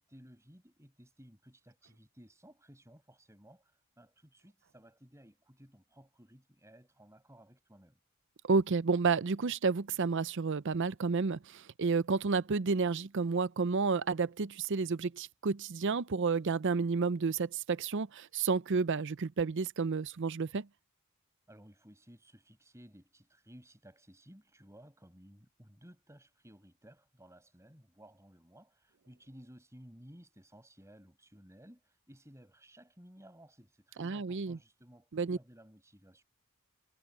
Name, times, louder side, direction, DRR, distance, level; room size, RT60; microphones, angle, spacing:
voice 1, 0.0-8.0 21.5-36.2, equal, 15° right, 6.9 m, -57 dB
voice 2, 8.4-20.7 34.0-34.6 35.1-35.4, right 4 dB, 55° right, 0.6 m, -31 dB
head